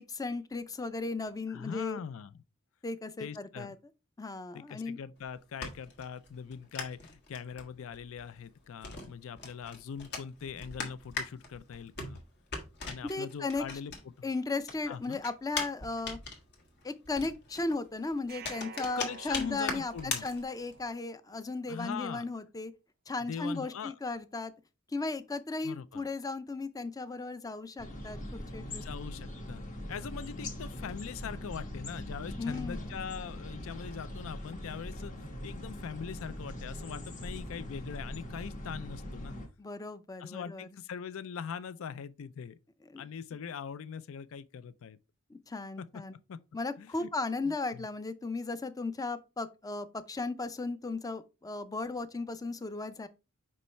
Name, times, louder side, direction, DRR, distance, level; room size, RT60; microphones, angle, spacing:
voice 1, 0.0-2.0 2.8-3.8 4.2-5.0 13.0-13.7 14.2-16.2 16.8-22.7 23.1-24.5 24.9-28.8 32.3-32.9 39.6-40.7 42.9-43.0 45.3-46.1 46.5-53.1, left 3 dB, 15° left, 0.5 m, -36 dB
voice 2, 1.5-2.4 3.2-3.8 4.5-12.2 12.8-13.9 14.2-14.3 14.9-15.2 18.8-20.3 21.7-22.2 23.3-23.9 25.6-26.1 28.7-29.6 29.9-39.4 40.2-42.6 43.0-45.0 45.8-45.9 46.3-46.4 46.8-47.1 47.4-47.9, left 7 dB, 70° left, 0.4 m, -42 dB
sound 1, 5.2-14.3 14.6-20.9, left 4 dB, 55° left, 1.6 m, -41 dB
sound 2, 18.3-21.4, right 6 dB, 45° right, 0.4 m, -50 dB
sound 3, 27.8-39.5, left 1 dB, 40° left, 1.3 m, -41 dB
5.4 x 5.3 x 3.3 m
head